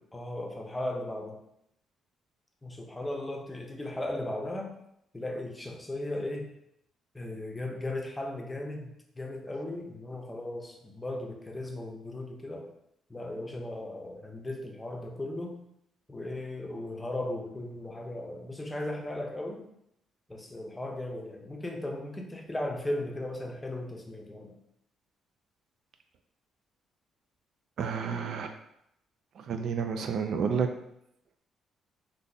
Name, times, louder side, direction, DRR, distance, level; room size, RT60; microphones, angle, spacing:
voice 1, 0.1-1.4 2.6-4.8 5.1-6.5 7.1-12.7 13.1-15.6 16.1-19.6 20.3-24.6, left 1 dB, 15° left, 1 dB, 0.6 m, -36 dB
voice 2, 27.8-28.5 29.4-30.7, right 6 dB, 70° right, 6 dB, 0.3 m, -30 dB
3.6 x 2.6 x 2.6 m, 0.77 s
cardioid pair, 90°, 0 cm